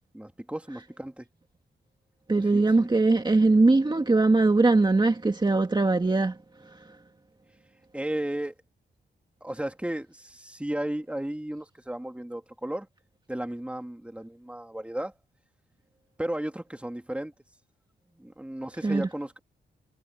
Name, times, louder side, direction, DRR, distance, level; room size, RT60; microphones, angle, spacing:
voice 1, 0.1-1.3 2.4-2.9 7.9-8.6 9.4-12.9 13.3-15.1 16.2-17.3 18.1-19.4, right 1 dB, 5° right, 2.4 m, -34 dB
voice 2, 2.3-7.0 18.8-19.1, right 3 dB, 25° right, 2.0 m, -22 dB
cardioid pair, 95°, 19 cm